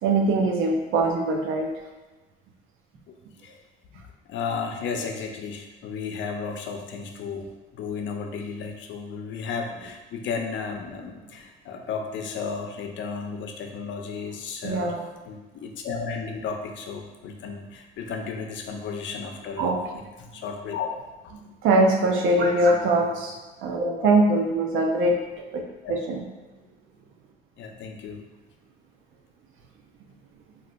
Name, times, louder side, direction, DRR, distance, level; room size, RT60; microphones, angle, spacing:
voice 1, 0.0-1.7 14.6-15.1 19.6-19.8 21.6-23.3 23.6-25.2 25.5-25.6 25.9-26.2, right 2 dB, 90° right, 1 dB, 0.5 m, -22 dB
voice 2, 3.9-15.0 15.3-20.9 21.2-21.3 24.0-24.1 25.8-25.9 27.6-28.2, left 5 dB, 70° left, 3 dB, 0.5 m, -34 dB
2.5 x 2.1 x 3.9 m, 1.2 s
cardioid pair, 90°, 20 cm